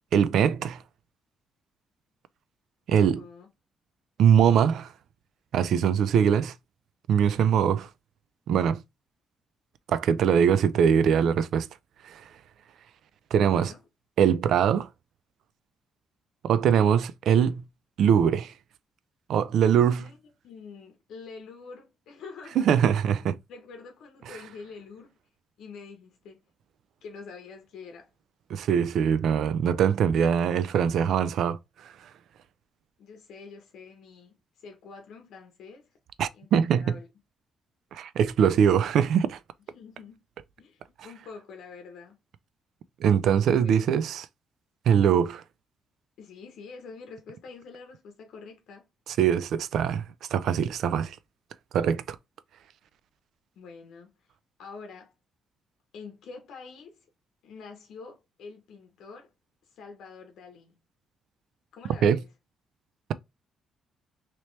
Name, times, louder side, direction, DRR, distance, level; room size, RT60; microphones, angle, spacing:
voice 1, 0.1-0.8 2.9-3.2 4.2-4.9 5.5-6.5 7.1-7.9 8.5-8.8 9.9-11.7 12.0-12.2 13.3-13.7 14.2-14.9 16.4-17.6 18.0-18.5 19.3-20.0 22.6-23.4 28.5-31.9 36.2-37.0 37.9-39.4 43.0-44.3 44.9-45.4 49.2-50.0 50.3-51.2 51.7-52.2 62.0-62.2, right 8 dB, 75° right, 0.3 m, -22 dB
voice 2, 3.0-3.5 13.4-13.8 20.0-20.2 20.4-22.7 23.5-25.1 25.6-26.4 27.0-28.1 33.0-35.9 36.3-37.1 39.7-40.2 40.6-42.2 43.5-43.8 46.2-48.8 53.6-54.3 54.6-55.1 55.9-57.1 57.4-59.3 59.7-60.8 61.7-62.3, left 5 dB, 75° left, 0.8 m, -46 dB
3.0 x 2.9 x 3.1 m
cardioid pair, 90°, 0 cm